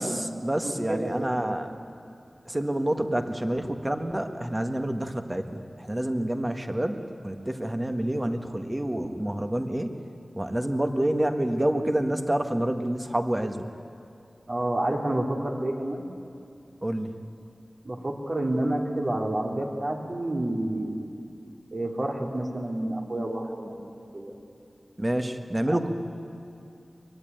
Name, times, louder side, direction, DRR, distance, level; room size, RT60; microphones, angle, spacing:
voice 1, 0.0-1.7 2.4-10.0 10.3-13.7 16.8-17.1 25.0-25.9, right 1 dB, 20° right, 6 dB, 1.7 m, -28 dB
voice 2, 0.6-1.5 14.5-16.0 17.8-21.1 21.7-23.8 24.1-24.3 25.7-25.9, right 1 dB, 45° right, 0 dB, 3.0 m, -29 dB
23.5 x 22.0 x 9.3 m, 2.5 s
wide cardioid pair, 80°, 0 cm